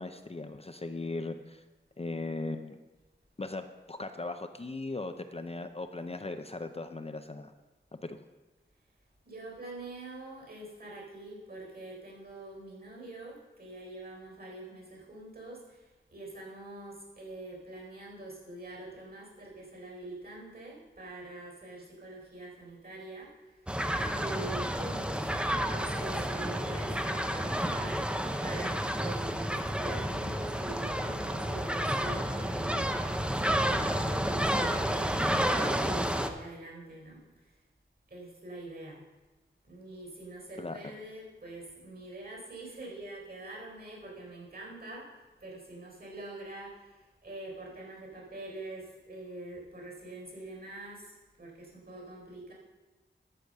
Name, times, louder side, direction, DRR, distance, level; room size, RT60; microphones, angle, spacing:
voice 1, 0.0-1.6 2.0-2.8 3.4-7.5 8.0-8.2 40.6-40.9, left 2 dB, 30° left, 8 dB, 0.6 m, -38 dB
voice 2, 9.2-23.7 24.1-32.8 33.4-37.5 38.1-39.0 39.6-45.1 45.4-52.5, right 2 dB, 50° right, -1 dB, 4.2 m, -45 dB
sound 1, 23.7-36.3, equal, 5° right, 0.7 m, -30 dB
13.0 x 5.0 x 6.6 m, 1.2 s
wide cardioid pair, 80°, 20 cm